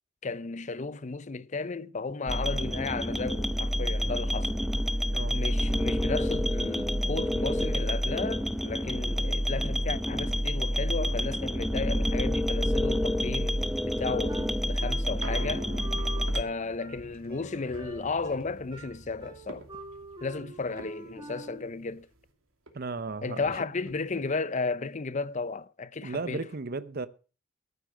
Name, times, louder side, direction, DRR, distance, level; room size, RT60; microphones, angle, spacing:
voice 1, 0.2-4.5 5.3-15.7 16.3-19.7 20.2-22.1 23.2-26.5, left 4 dB, 35° left, 0.5 m, -34 dB
sound 1, 2.3-16.4, equal, ahead, 0.6 m, -28 dB
voice 2, 5.1-5.4 22.7-23.5 26.0-27.1, right 3 dB, 45° right, 0.6 m, -35 dB
sound 2, 13.6-22.3 22.7-22.8 23.0-24.4 24.9-25.0, right 2 dB, 90° right, 2.7 m, -48 dB
Wind instrument woodwind instrument, 14.3-21.7, right 2 dB, 20° right, 1.6 m, -45 dB
14.0 x 8.4 x 6.2 m
head